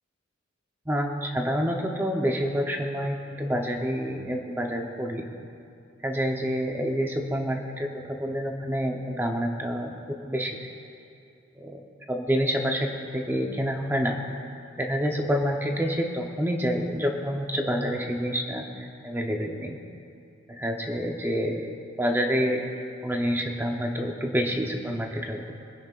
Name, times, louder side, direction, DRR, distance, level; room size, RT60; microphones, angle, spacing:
voice 1, 0.9-5.3 6.0-10.7 11.6-11.8 12.1-14.2 14.8-19.8 20.5-21.7 22.0-22.7 23.0-25.6, equal, 10° right, 2 dB, 0.8 m, -28 dB
26.5 x 10.5 x 2.5 m, 2.6 s
head